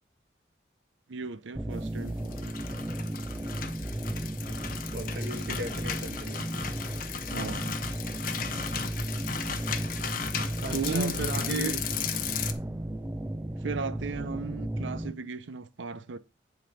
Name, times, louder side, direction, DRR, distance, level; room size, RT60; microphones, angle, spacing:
voice 1, 1.1-2.5 7.3-7.7 10.7-11.8 13.6-16.2, right 4 dB, 90° right, 0.6 m, -35 dB
sound 1, 1.6-15.1, right 1 dB, 10° right, 0.5 m, -34 dB
sound 2, 2.1-12.5, left 7 dB, 50° left, 0.9 m, -36 dB
voice 2, 4.9-6.4 10.6-11.8, right 2 dB, 60° right, 1.4 m, -36 dB
10.5 x 4.0 x 5.1 m
head